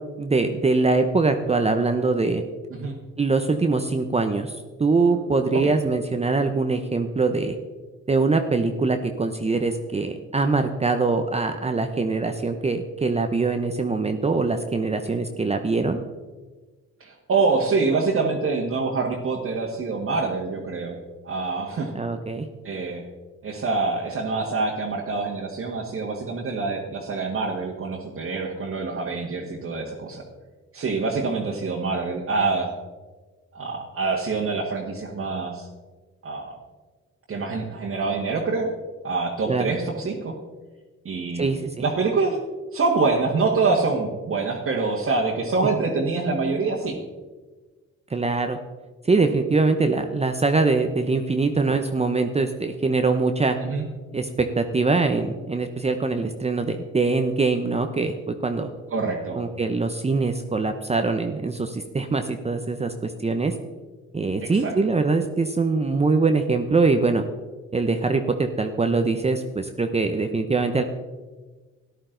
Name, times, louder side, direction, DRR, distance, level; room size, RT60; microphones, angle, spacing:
voice 1, 0.2-2.4 3.2-7.6 8.1-16.0 21.9-22.5 39.5-39.7 41.4-41.7 48.1-48.6 49.0-53.6 54.1-58.7 59.3-63.5 64.1-67.2 67.7-70.8, right 3 dB, 20° right, 6 dB, 0.7 m, -23 dB
voice 2, 17.0-21.0 21.2-21.9 22.6-23.0 23.4-30.2 30.7-32.7 33.5-35.7 36.2-36.6 37.3-38.7 39.0-40.3 41.1-41.5 41.8-42.4 42.7-47.0 53.6-53.9 58.9-59.4 64.4-64.7, right 4 dB, 45° right, -3 dB, 1.6 m, -25 dB
13.5 x 11.0 x 3.9 m, 1.3 s
cardioid pair, 90°, 30 cm